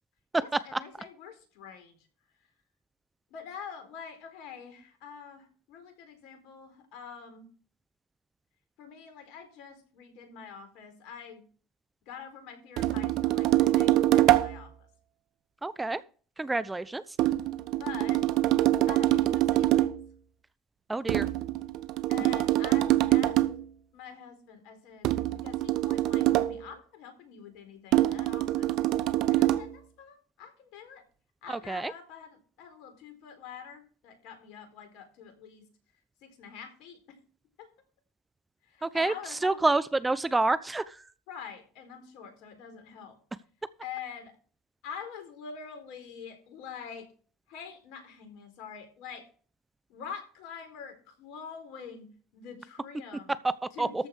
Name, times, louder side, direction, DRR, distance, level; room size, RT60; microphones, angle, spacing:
voice 1, 0.4-2.1 3.3-7.5 8.8-11.5 12.1-14.9 17.8-18.2 18.9-19.9 22.1-23.4 23.9-28.7 29.3-31.0 31.4-35.7 36.2-37.0 37.6-37.7 38.6-39.6 41.3-43.2 43.8-44.3 44.8-47.1 47.5-49.3 49.9-53.3 53.7-54.1, left 7 dB, 65° left, 7 dB, 4.2 m, -45 dB
sound 1, 12.8-14.6 17.2-20.0 21.1-23.6 25.0-26.6 27.9-29.7, right 15 dB, 60° right, 0.9 m, -25 dB
voice 2, 15.6-16.0 16.4-17.0 20.9-21.3 31.5-31.9 38.8-39.1 39.4-41.0 53.4-53.5 53.8-54.0, right 2 dB, 15° right, 16 dB, 0.8 m, -28 dB
14.0 x 5.4 x 6.5 m, 0.41 s
hypercardioid pair, 80°, 0 cm